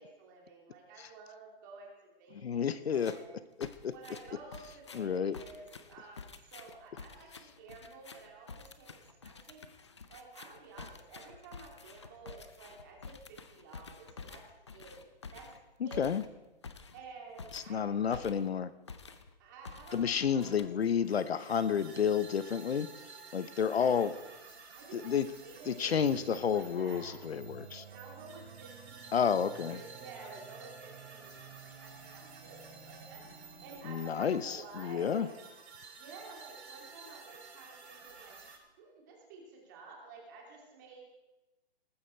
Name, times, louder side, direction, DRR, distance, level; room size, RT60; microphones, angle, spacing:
voice 1, 0.0-3.4 3.9-8.9 9.2-9.6 10.1-14.4 14.7-15.0 15.3-15.5 15.8-16.1 16.9-18.3 19.4-20.8 23.7-24.1 24.7-25.1 25.4-27.2 27.8-29.4 29.6-33.3 33.6-35.3 36.0-38.3 38.8-41.0, right 4 dB, 15° right, -2 dB, 2.7 m, -52 dB
voice 2, 2.4-3.2 3.6-3.9 4.9-5.4 15.8-16.2 17.5-18.7 19.9-22.9 23.3-24.1 24.9-25.3 25.7-27.9 29.1-29.8 33.8-35.3, left 7 dB, 70° left, 14 dB, 0.9 m, -30 dB
sound 1, 2.9-3.3 3.6-18.6 18.9-19.3 19.6-21.1, left 5 dB, 25° left, 0.6 m, -50 dB
sound 2, 20.8-38.6, right 5 dB, 85° right, 6.3 m, -53 dB
sound 3, 25.9-33.9, right 6 dB, 65° right, 6.4 m, -53 dB
19.0 x 14.5 x 4.5 m, 1.1 s
hypercardioid pair, 180°, 32 cm